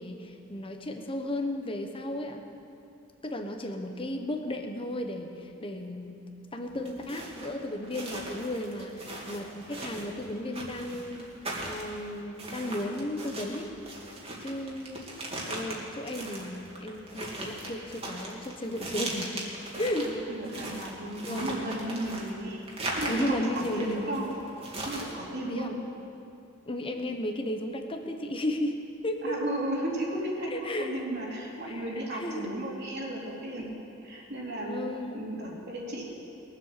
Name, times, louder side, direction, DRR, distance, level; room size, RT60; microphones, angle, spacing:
voice 1, 0.0-2.4 3.2-6.2 6.5-11.3 11.6-13.7 14.4-15.1 15.5-19.5 19.8-20.1 21.2-21.6 23.1-24.2 25.5-25.8 26.7-29.4 30.5-31.0 31.7-32.5 34.6-35.3, left 1 dB, 25° left, 4 dB, 1.1 m, -34 dB
sound 1, 6.7-25.2, right 2 dB, 30° right, 2.4 m, -39 dB
voice 2, 19.7-22.6 23.0-24.3 24.8-25.8 29.2-30.5 30.8-33.7 34.0-34.9 35.1-36.0, right 1 dB, 55° right, -4 dB, 3.1 m, -34 dB
21.5 x 7.9 x 6.6 m, 2.7 s
head